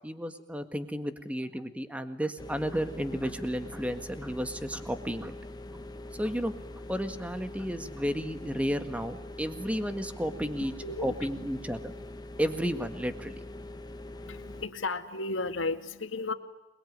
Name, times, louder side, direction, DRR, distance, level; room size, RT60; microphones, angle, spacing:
voice 1, 0.0-5.3 6.2-6.5 6.9-10.7 11.0-11.8 12.4-13.3, equal, 5° right, 9 dB, 1.7 m, -32 dB
sound 1, 2.4-14.7, left 1 dB, 20° left, 1.4 m, -43 dB
voice 2, 10.8-11.2 14.3-16.3, left 3 dB, 80° left, 8 dB, 2.1 m, -33 dB
28.0 x 21.5 x 9.5 m, 1.1 s
head